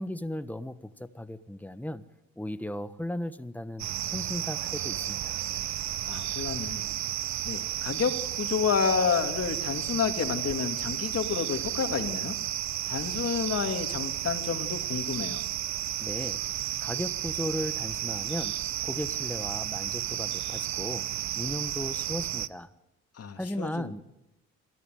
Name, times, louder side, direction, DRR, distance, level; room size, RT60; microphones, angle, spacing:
voice 1, 0.0-2.0 2.4-3.9 4.1-5.4 16.0-16.4 16.8-18.6 18.8-21.1 21.3-22.7 23.4-24.0, left 1 dB, 5° left, 12 dB, 1.2 m, -36 dB
sound 1, 3.8-22.5, right 12 dB, 65° right, 0.8 m, -32 dB
voice 2, 6.0-6.9 7.4-12.4 12.9-15.4 23.2-23.9, left 6 dB, 50° left, 6 dB, 2.6 m, -30 dB
27.0 x 14.0 x 9.3 m, 0.98 s
cardioid pair, 90°, 30 cm